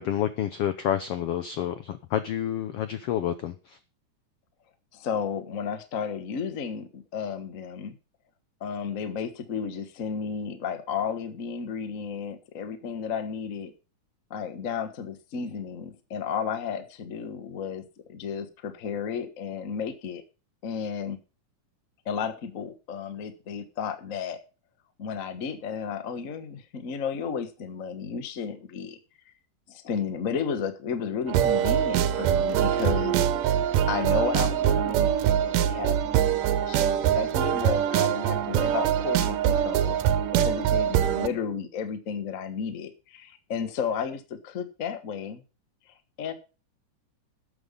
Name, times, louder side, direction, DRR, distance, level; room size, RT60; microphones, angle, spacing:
voice 1, 0.0-3.8, left 10 dB, 90° left, 11 dB, 1.3 m, -29 dB
voice 2, 4.9-7.9 8.6-13.7 14.3-20.2 20.6-21.2 22.0-24.4 25.0-29.0 29.3-29.4 29.7-33.2 33.9-35.1 35.4-36.0 36.3-36.4 36.7-40.0 40.3-45.4 46.2-46.3, left 7 dB, 75° left, 9 dB, 0.7 m, -33 dB
sound 1, 31.3-41.3, right 10 dB, 85° right, 2.4 m, -23 dB
12.5 x 8.0 x 5.3 m, 0.33 s
omnidirectional pair, 3.8 m